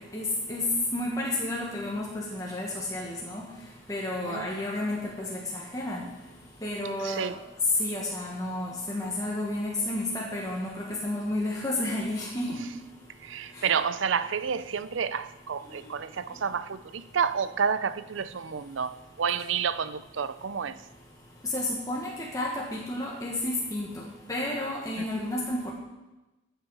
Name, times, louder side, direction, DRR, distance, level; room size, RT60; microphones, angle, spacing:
voice 1, 0.1-0.6 0.9-3.4 3.9-5.4 5.7-6.0 6.6-7.3 7.8-10.7 11.0-12.5 15.7-15.8 21.5-23.9 24.3-25.7, left 1 dB, 20° left, 1.5 m, -31 dB
voice 2, 13.3-18.9 19.2-20.7, right 6 dB, 70° right, 0.5 m, -29 dB
14.5 x 8.0 x 4.8 m
head